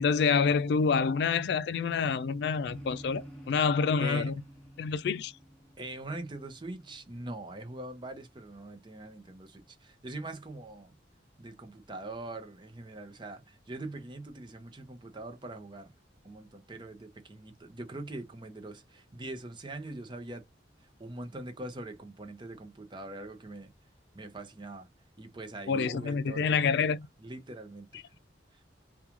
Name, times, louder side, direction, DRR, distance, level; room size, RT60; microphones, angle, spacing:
voice 1, 0.0-4.3 4.8-5.3 25.7-27.0, left 5 dB, 60° left, 0.3 m, -27 dB
sound 1, 2.6-8.3, equal, ahead, 1.2 m, -51 dB
voice 2, 4.0-4.3 5.8-10.9 11.4-15.9 16.2-20.4 20.8-23.7 24.1-24.9 25.2-26.8 27.2-28.0 28.5-28.6, right 2 dB, 25° right, 0.6 m, -42 dB
3.0 x 2.3 x 2.4 m
head